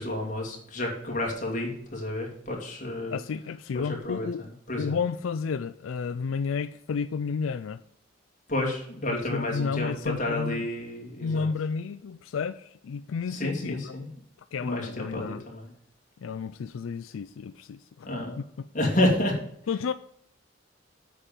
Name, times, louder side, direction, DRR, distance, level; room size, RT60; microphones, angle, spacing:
voice 1, 0.0-3.2 3.7-5.0 8.5-11.5 13.3-14.1 14.6-15.7 18.0-18.4 18.7-19.9, left 1 dB, 40° left, -1 dB, 2.5 m, -30 dB
voice 2, 3.1-4.4 4.8-7.8 9.1-10.7 11.2-14.0 14.5-15.4 16.2-18.1 19.7-19.9, left 5 dB, 90° left, 12 dB, 0.4 m, -31 dB
8.3 x 5.2 x 7.6 m, 0.70 s
head